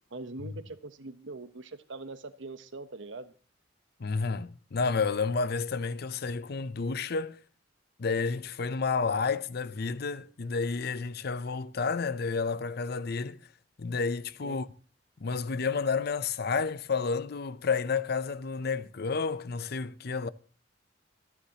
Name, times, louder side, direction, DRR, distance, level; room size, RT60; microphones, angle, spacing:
voice 1, 0.1-3.3 14.4-14.6, right 3 dB, 80° right, 0.9 m, -42 dB
voice 2, 4.0-7.4 8.0-13.4 13.8-14.7 15.2-20.3, left 4 dB, 55° left, 0.6 m, -30 dB
25.5 x 9.8 x 2.9 m
head